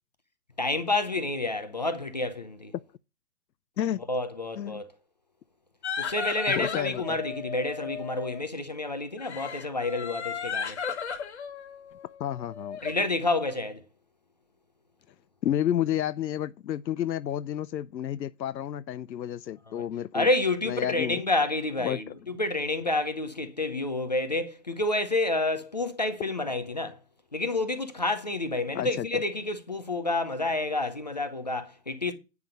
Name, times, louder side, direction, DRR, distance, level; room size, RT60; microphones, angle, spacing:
voice 1, 0.6-2.7 4.1-4.9 6.0-10.8 12.8-13.8 20.1-27.0 27.3-32.1, left 2 dB, 25° left, 0.6 m, -29 dB
sound 1, 5.8-8.5 9.2-13.0, left 6 dB, 40° left, 1.4 m, -35 dB
voice 2, 6.5-7.2 12.2-12.8 15.4-20.3 20.6-21.2 21.8-22.0 28.7-29.2, left 11 dB, 80° left, 0.6 m, -31 dB
9.5 x 5.9 x 5.0 m
hypercardioid pair, 165°, 50 cm